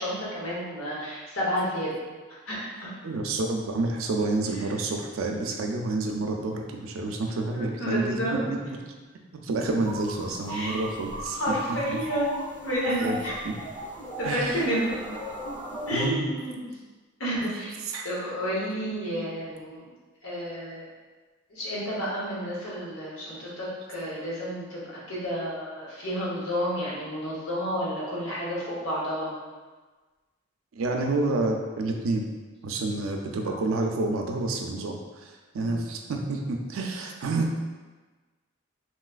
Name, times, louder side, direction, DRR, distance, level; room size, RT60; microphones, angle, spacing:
voice 1, 0.0-1.9 2.3-2.9 7.5-8.5 10.5-10.7 11.3-13.4 14.2-14.9 15.9-16.8 17.2-17.8 18.0-19.9 20.2-20.8 21.5-24.8 25.1-29.3 35.6-35.9, equal, 80° left, -6 dB, 1.1 m, -30 dB
voice 2, 3.0-8.4 9.3-11.5 11.9-12.0 13.0-13.2 13.4-13.5 14.2-14.7 15.9-16.3 17.5-17.6 17.9-18.1 18.9-19.4 30.7-32.3 32.6-37.5, right 2 dB, 90° right, 2 dB, 0.4 m, -29 dB
sound 1, 9.8-16.1, equal, 15° left, 0.9 m, -37 dB
3.1 x 3.0 x 2.4 m, 1.3 s
head